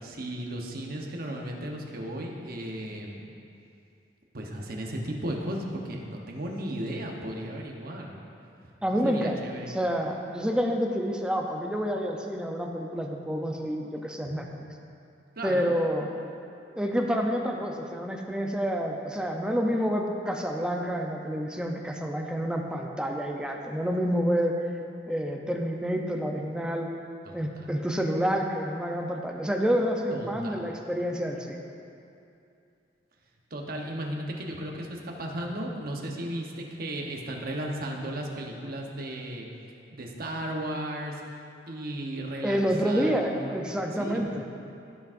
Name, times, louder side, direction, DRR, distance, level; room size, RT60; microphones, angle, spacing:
voice 1, 0.0-3.3 4.3-8.2 8.6-9.7 15.4-15.7 27.2-27.7 30.1-30.7 33.5-39.5 39.9-41.2 41.7-43.7 44.0-44.2, right 1 dB, 55° right, 0 dB, 1.0 m, -35 dB
voice 2, 8.8-9.4 9.7-14.5 15.4-16.1 16.8-24.6 25.1-26.9 27.3-31.6 42.4-44.4, equal, 5° right, 1 dB, 0.6 m, -28 dB
15.0 x 6.1 x 2.6 m, 2.6 s
head